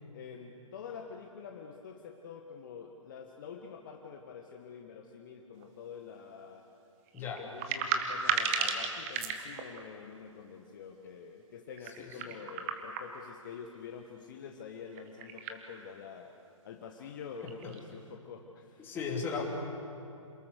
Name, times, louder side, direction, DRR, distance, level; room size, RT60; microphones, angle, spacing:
voice 1, 0.1-6.7 7.2-16.3 16.6-19.4, left 6 dB, 40° left, 3 dB, 1.4 m, -47 dB
sound 1, 5.6-5.7 7.1-9.8 11.7-13.5 14.9-15.6 15.9-16.0 17.0-17.1 17.4-17.8, right 6 dB, 25° right, 1.8 m, -34 dB
voice 2, 7.1-7.5 11.8-12.3 17.4-17.7 18.8-19.5, left 5 dB, 15° left, -1 dB, 2.9 m, -37 dB
28.0 x 20.0 x 6.6 m, 2.7 s
figure-of-eight pair, 130°, 17 cm